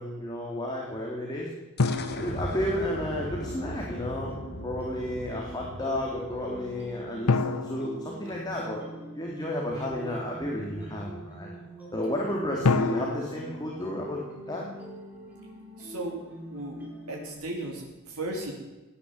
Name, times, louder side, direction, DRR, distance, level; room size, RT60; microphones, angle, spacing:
voice 1, 0.0-1.5 2.1-4.3 4.6-8.8 9.1-11.5 11.9-14.2 14.5-14.6, left 1 dB, 20° left, -2 dB, 2.5 m, -32 dB
sound 1, 1.8-3.4 7.3-9.2 12.6-14.9, left 4 dB, 90° left, 0.7 m, -30 dB
sound 2, 1.8-7.3, left 1 dB, 45° left, 1.6 m, -39 dB
sound 3, 1.9-17.4, right 1 dB, 5° right, 4.6 m, -44 dB
voice 2, 15.8-16.2 16.5-18.5, right 1 dB, 85° right, -2 dB, 3.6 m, -36 dB
17.5 x 10.0 x 7.6 m, 1.1 s
head